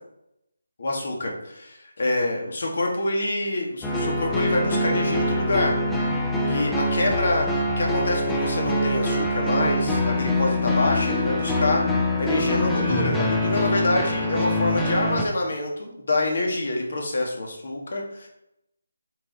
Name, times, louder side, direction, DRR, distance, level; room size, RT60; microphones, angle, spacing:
voice 1, 0.8-5.8 6.4-11.8 12.2-18.3, left 2 dB, 60° left, 0 dB, 2.0 m, -26 dB
sound 1, 3.8-15.2, left 1 dB, 5° left, 0.8 m, -24 dB
7.5 x 4.4 x 4.2 m, 0.83 s
figure-of-eight pair, 160°, 0 cm